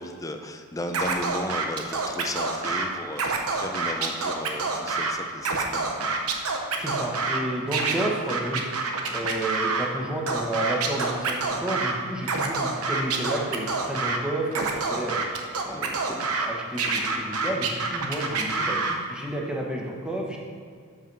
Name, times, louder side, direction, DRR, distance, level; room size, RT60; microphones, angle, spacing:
voice 1, 0.0-6.2 15.7-16.2, left 1 dB, 15° left, 6 dB, 0.5 m, -35 dB
Scratching (performance technique), 0.9-2.8 3.1-5.1 5.4-7.4 7.7-9.9 10.3-11.9 12.2-14.2 14.5-16.5 16.8-19.0, right 4 dB, 80° right, 0.9 m, -27 dB
voice 2, 6.8-8.6 9.1-15.2 15.6-16.0 16.4-18.8 19.1-20.4, right 1 dB, 5° right, -2 dB, 1.1 m, -31 dB
6.8 x 5.6 x 6.0 m, 2.2 s
head